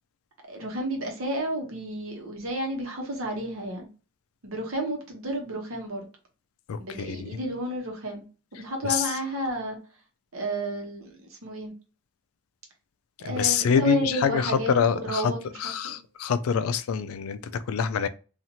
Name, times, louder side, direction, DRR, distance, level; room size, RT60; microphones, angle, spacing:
voice 1, 0.5-3.9 4.4-6.0 6.8-8.2 8.5-9.8 10.3-11.7 13.2-14.7 15.0-16.0, right 1 dB, 70° right, 1.0 m, -32 dB
voice 2, 6.7-7.4 8.8-9.1 13.2-15.3 15.6-18.1, left 7 dB, 80° left, 0.3 m, -26 dB
2.7 x 2.4 x 2.8 m
head